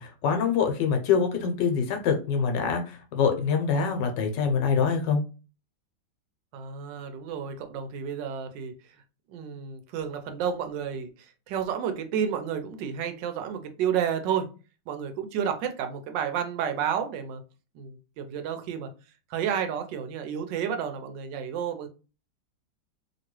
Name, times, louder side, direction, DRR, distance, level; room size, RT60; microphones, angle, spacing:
voice 1, 0.0-5.2, left 6 dB, 80° left, 5 dB, 1.3 m, -25 dB
voice 2, 6.5-8.7 9.3-11.1 11.5-14.5 14.9-17.4 17.7-18.9 19.3-21.9, right 8 dB, 85° right, 7 dB, 1.3 m, -31 dB
2.9 x 2.8 x 3.0 m, 0.33 s
omnidirectional pair, 1.9 m